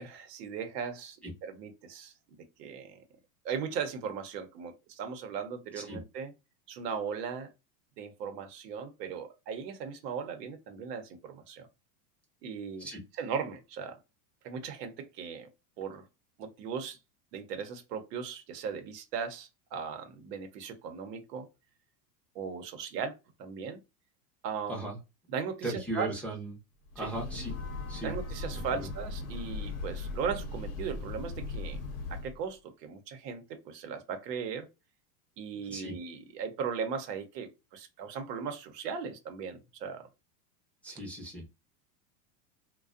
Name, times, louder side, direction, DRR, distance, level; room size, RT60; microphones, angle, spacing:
voice 1, 0.0-3.0 3.4-6.3 6.7-7.5 8.0-11.7 12.4-12.9 13.2-14.0 14.4-15.5 15.8-16.0 16.4-17.0 17.3-21.5 22.3-23.8 24.4-24.8 25.3-26.1 27.0-27.1 28.0-31.8 32.1-34.7 35.4-40.1, right 6 dB, 85° right, 0.8 m, -38 dB
voice 2, 25.6-26.5 26.9-27.5 27.9-28.1 28.7-28.9 35.7-35.9 40.8-41.5, right 2 dB, 5° left, 0.5 m, -37 dB
Breathing / Train, 26.9-32.4, left 3 dB, 55° left, 0.8 m, -38 dB
2.4 x 2.2 x 2.4 m
supercardioid pair, 135°, 47 cm